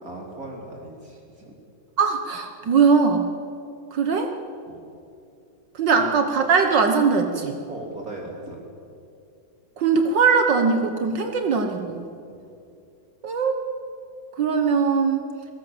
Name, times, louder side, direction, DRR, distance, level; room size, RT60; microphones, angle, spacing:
voice 1, 0.0-1.6 2.6-2.7 4.7-4.8 6.0-6.1 7.7-8.6 12.3-12.4, right 2 dB, 45° right, -1 dB, 3.7 m, -38 dB
voice 2, 2.0-3.3 3.9-4.3 5.8-7.6 9.8-12.0 13.2-13.6 14.4-15.2, right 5 dB, 65° right, 5 dB, 1.9 m, -20 dB
27.0 x 18.0 x 7.9 m, 2.5 s
omnidirectional pair, 2.1 m